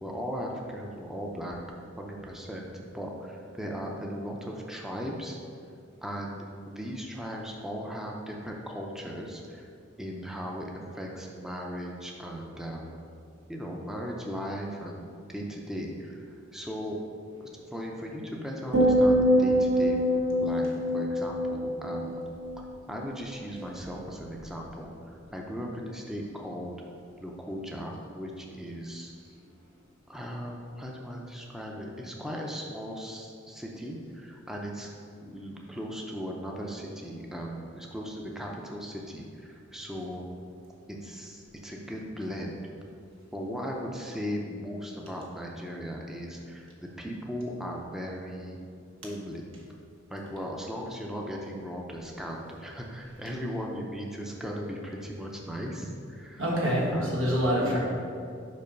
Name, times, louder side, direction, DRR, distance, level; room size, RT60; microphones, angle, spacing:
voice 1, 0.0-1.6 2.0-5.4 6.0-9.7 10.0-13.0 13.5-15.0 15.3-16.2 16.5-17.0 17.4-20.0 20.4-20.7 20.9-22.2 22.9-26.8 27.2-29.1 30.1-34.9 35.2-40.3 40.9-42.6 43.3-46.7 47.0-48.6 49.0-49.5 50.1-56.4 56.9-57.8, equal, ahead, -1 dB, 0.5 m, -37 dB
sound 1, 18.7-23.1 23.4-23.8, equal, 55° right, 1.2 m, -25 dB
voice 2, 56.4-57.8, equal, 85° right, -4 dB, 1.5 m, -26 dB
5.4 x 4.5 x 5.2 m, 2.3 s
head